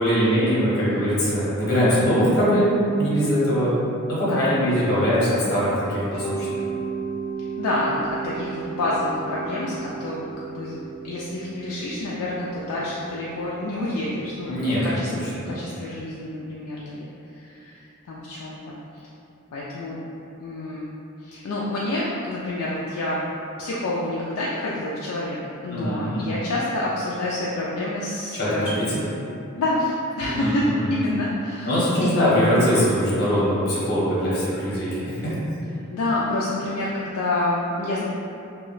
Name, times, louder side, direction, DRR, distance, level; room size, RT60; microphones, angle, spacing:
voice 1, 0.0-3.7 4.1-6.5 14.5-15.6 25.7-26.3 28.3-29.0 30.3-30.9 31.6-35.4, equal, 50° left, -9 dB, 0.9 m, -22 dB
Mallet percussion, 6.1-14.9, right 6 dB, 15° left, 0.8 m, -35 dB
voice 2, 7.6-15.1 15.5-19.1 19.5-20.0 20.4-20.9 21.2-23.3 23.6-28.8 29.6-32.5 35.9-38.0, left 1 dB, 70° left, -6 dB, 0.3 m, -28 dB
2.2 x 2.1 x 3.8 m, 2.7 s
head